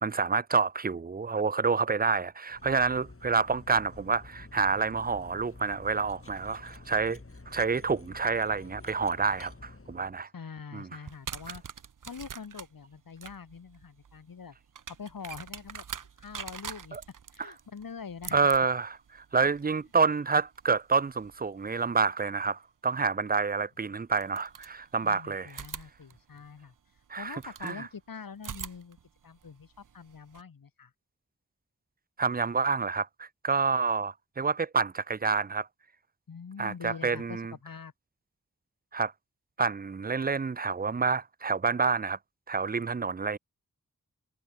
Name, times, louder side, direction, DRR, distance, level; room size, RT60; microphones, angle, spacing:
voice 1, 0.0-7.2 7.5-10.3 10.7-10.9 16.9-17.0 18.3-25.5 27.1-27.9 32.2-35.7 36.6-37.5 38.9-39.1 39.6-42.2 42.5-43.4, right 5 dB, 25° right, 0.5 m, -28 dB
Cutlery silverware, 2.5-10.2, left 3 dB, 40° left, 3.7 m, -50 dB
voice 2, 10.3-11.6 12.0-14.6 14.9-15.8 16.2-17.0 17.3-18.4 25.0-26.7 27.2-29.0 29.2-30.9 36.3-37.9, left 6 dB, 75° left, 1.4 m, -44 dB
sound 1, 11.0-21.8 23.3-23.4 24.1-25.1 25.5-27.8 28.4-30.4, right 7 dB, 65° right, 0.7 m, -45 dB
wide cardioid pair, 75°, 35 cm